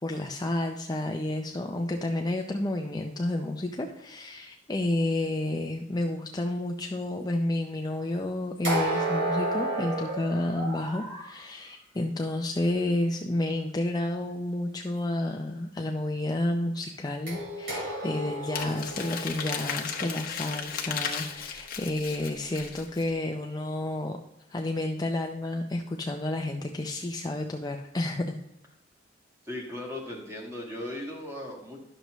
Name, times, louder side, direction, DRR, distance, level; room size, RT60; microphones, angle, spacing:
voice 1, 0.0-24.2 24.5-28.4, left 1 dB, 20° left, 2 dB, 0.5 m, -30 dB
sound 1, 8.6-11.3 17.3-21.3, right 1 dB, 75° right, 2.9 m, -32 dB
Crumpling crinkling, 18.5-23.1, left 7 dB, 50° left, 1.0 m, -35 dB
voice 2, 29.4-31.8, left 1 dB, 15° right, -1 dB, 1.8 m, -37 dB
11.0 x 6.7 x 3.1 m, 0.82 s
head